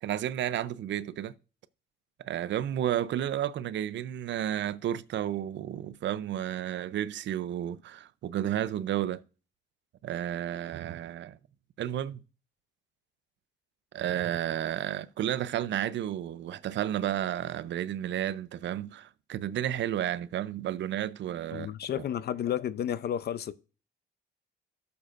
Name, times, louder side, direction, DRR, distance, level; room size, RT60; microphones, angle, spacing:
voice 1, 0.0-1.3 2.2-9.2 10.0-11.4 11.8-12.2 13.9-21.7, right 11 dB, 65° right, 0.6 m, -32 dB
voice 2, 21.5-23.5, left 10 dB, 55° left, 0.6 m, -32 dB
13.5 x 7.0 x 2.5 m
cardioid pair, 90°, 20 cm